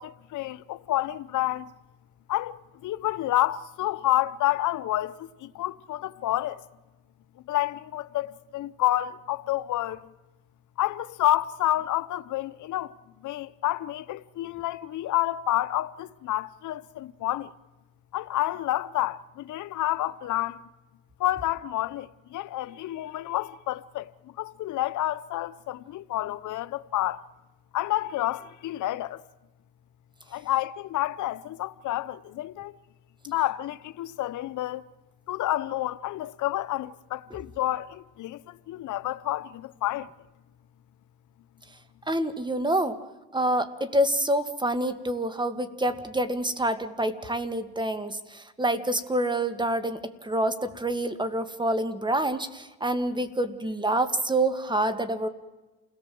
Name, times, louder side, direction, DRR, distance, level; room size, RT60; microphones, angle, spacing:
voice 1, 0.0-1.7 2.3-6.6 7.5-10.1 10.8-12.9 13.2-17.5 18.1-20.6 21.2-24.1 24.4-27.2 27.7-29.2 30.3-32.7 33.3-34.8 35.3-40.1, left 14 dB, 80° left, 0.8 m, -29 dB
voice 2, 42.1-43.0 43.3-55.3, right 1 dB, 15° right, 2.0 m, -27 dB
28.5 x 18.0 x 7.7 m
cardioid pair, 90°, 30 cm